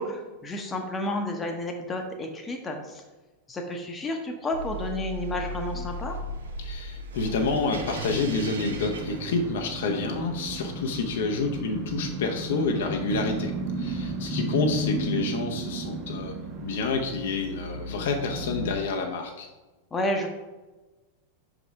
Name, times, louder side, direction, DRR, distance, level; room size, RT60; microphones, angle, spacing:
voice 1, 0.0-3.0 3.5-6.2 19.9-20.3, left 1 dB, 15° left, 3 dB, 0.9 m, -31 dB
sound 1, 4.5-9.8, right 1 dB, 65° right, 0.7 m, -37 dB
voice 2, 6.6-13.5 13.8-16.3 16.6-19.5, left 3 dB, 55° left, 3 dB, 0.7 m, -28 dB
sound 2, 7.3-18.7, right 2 dB, 35° right, 0.8 m, -34 dB
6.0 x 5.0 x 3.4 m, 1.2 s
figure-of-eight pair, 90°, 0 cm